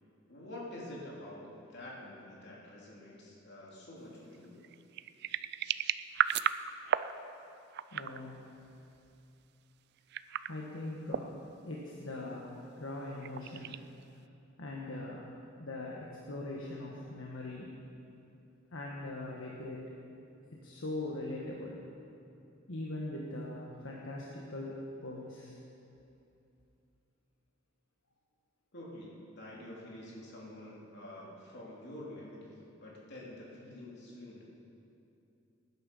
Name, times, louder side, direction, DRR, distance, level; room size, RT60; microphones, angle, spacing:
voice 1, 0.3-4.6 28.7-34.4, left 1 dB, 60° left, -4 dB, 3.3 m, -47 dB
sound 1, 4.3-7.1 7.7-8.2 10.0-10.6 11.1-11.4 12.9-14.0, right 9 dB, 55° right, 0.4 m, -34 dB
voice 2, 7.9-8.5 10.5-13.8 14.6-17.8 18.7-19.8 20.5-22.1 22.7-25.5, left 2 dB, 75° left, -3 dB, 1.4 m, -41 dB
19.0 x 10.0 x 5.5 m, 2.7 s
head